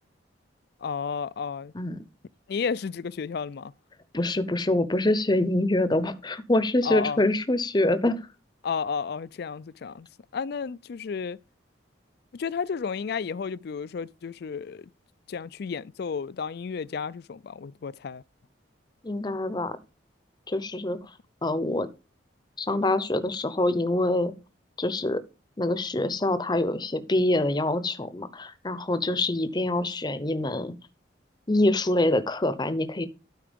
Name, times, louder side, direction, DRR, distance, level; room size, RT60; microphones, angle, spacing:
voice 1, 0.8-1.7 2.5-3.7 6.8-7.2 8.6-10.1 10.3-11.4 12.3-14.9 15.3-18.2, left 6 dB, 55° left, 0.4 m, -32 dB
voice 2, 4.1-8.2 19.0-19.8 20.5-21.0 21.4-21.9 22.6-24.3 24.8-25.2 25.6-30.7 31.5-33.1, left 1 dB, 20° left, 0.7 m, -25 dB
12.5 x 4.7 x 5.2 m
head